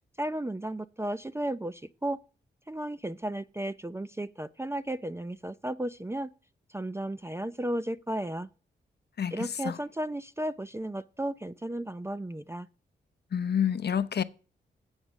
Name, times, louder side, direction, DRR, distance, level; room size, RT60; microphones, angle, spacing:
voice 1, 0.2-2.2 2.7-6.3 6.7-8.5 9.3-12.7, right 1 dB, 15° right, 0.4 m, -34 dB
voice 2, 9.2-9.8 13.3-14.2, left 8 dB, 60° left, 0.6 m, -28 dB
8.1 x 5.0 x 7.2 m
cardioid pair, 50°, 19 cm